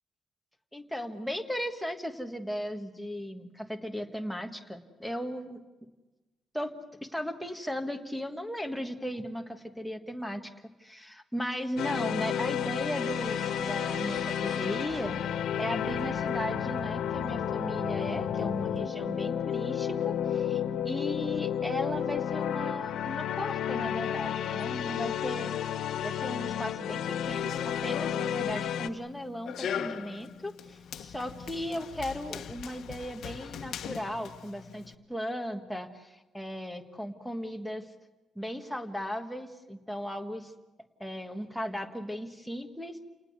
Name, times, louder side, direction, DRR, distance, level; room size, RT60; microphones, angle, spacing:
voice 1, 0.7-5.6 6.5-6.8 7.0-10.5 10.8-25.5 26.0-37.9 38.3-40.5 41.0-43.0, equal, ahead, 4 dB, 1.5 m, -36 dB
sound 1, 11.8-28.9, left 9 dB, 90° left, 1.3 m, -31 dB
sound 2, 12.8-15.5 15.8-18.8, right 1 dB, 25° right, 2.7 m, -47 dB
Run, 27.2-34.9, left 8 dB, 70° left, 1.1 m, -41 dB
29.5 x 19.0 x 8.2 m, 1.1 s
cardioid pair, 160°, 0 cm